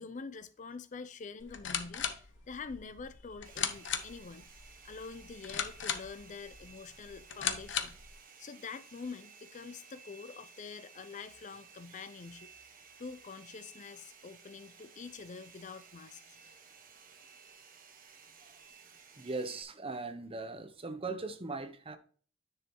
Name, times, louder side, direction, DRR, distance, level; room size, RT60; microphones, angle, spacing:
voice 1, 0.0-4.5 4.8-8.0 8.4-16.2, left 5 dB, 40° left, 0.4 m, -46 dB
sound 1, 1.4-8.1, left 8 dB, 65° left, 0.9 m, -38 dB
Domestic sounds home sounds, 3.4-19.6, right 5 dB, 45° right, 1.3 m, -56 dB
voice 2, 19.2-22.0, right 3 dB, 30° right, 0.8 m, -39 dB
9.9 x 6.4 x 2.9 m
head